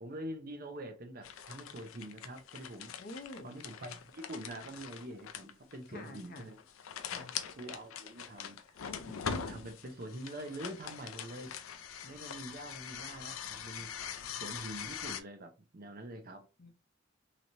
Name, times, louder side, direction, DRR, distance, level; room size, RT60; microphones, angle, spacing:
voice 1, 0.0-2.9 3.4-6.6 7.6-8.6 9.1-9.2 9.4-11.5 12.0-13.9 14.4-16.4, right 1 dB, 45° right, 0.7 m, -45 dB
sound 1, 1.2-15.2, left 7 dB, 90° left, 0.4 m, -43 dB
voice 2, 3.0-3.5 5.9-6.5 7.1-7.3 16.6-16.7, left 2 dB, 45° left, 0.7 m, -47 dB
3.1 x 2.9 x 2.6 m
head